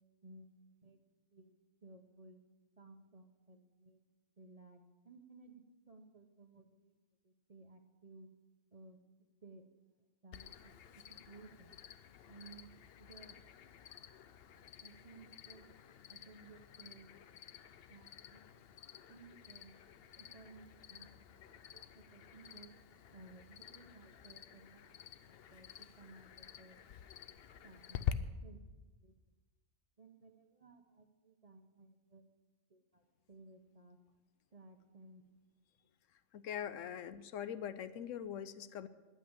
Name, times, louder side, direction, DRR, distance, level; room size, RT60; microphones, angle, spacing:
voice 1, 0.2-0.5 0.8-1.0 1.3-1.6 1.8-2.4 2.8-4.0 4.4-4.8 5.0-6.9 7.5-8.3 8.7-9.0 9.4-9.9 10.2-10.7 11.3-11.7 12.3-12.7 13.0-13.4 14.8-15.7 16.1-17.1 17.9-18.4 19.1-19.7 20.2-21.4 21.7-22.7 23.1-25.7 26.0-26.8 27.6-28.6 29.0-29.1 30.0-32.2 32.7-33.0 33.3-34.0 34.5-35.2, right 3 dB, 35° right, 5 dB, 0.8 m, -58 dB
Cricket, 10.3-28.1, left 10 dB, 60° left, 0.7 m, -49 dB
voice 2, 36.3-38.9, left 9 dB, 75° left, 13 dB, 1.0 m, -42 dB
10.5 x 9.1 x 8.8 m, 1.2 s
omnidirectional pair, 1.3 m